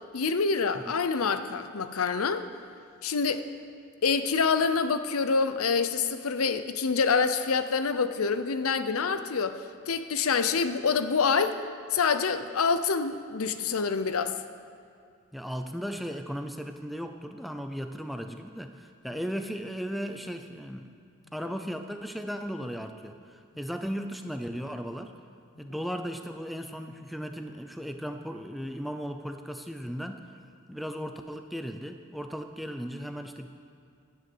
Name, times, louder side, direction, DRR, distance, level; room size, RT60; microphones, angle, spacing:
voice 1, 0.1-2.5 3.0-3.4 4.0-9.6 9.9-11.6 11.9-14.3, left 5 dB, 80° left, 11 dB, 0.6 m, -26 dB
voice 2, 15.3-20.9 21.3-25.1 25.6-30.3 30.7-33.5, equal, ahead, 6 dB, 0.5 m, -36 dB
10.5 x 9.6 x 7.8 m, 2.3 s
head